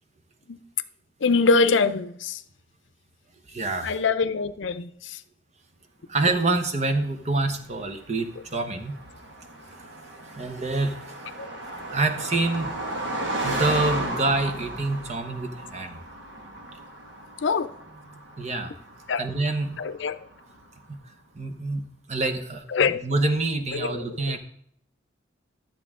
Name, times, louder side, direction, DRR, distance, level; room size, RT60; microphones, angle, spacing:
voice 1, 1.2-2.4 3.8-5.2 11.4-11.5 17.4-17.7 19.1-19.2 19.8-20.2 22.7-23.0 23.7-24.0, left 4 dB, 75° left, 0.5 m, -23 dB
voice 2, 3.5-3.9 6.1-9.0 9.9-11.2 11.9-12.7 13.4-16.0 18.4-18.7 19.2-19.9 21.3-24.4, right 2 dB, 35° right, 0.9 m, -27 dB
Car passing by, 7.0-20.7, right 1 dB, 70° right, 1.6 m, -35 dB
12.5 x 7.5 x 3.7 m
head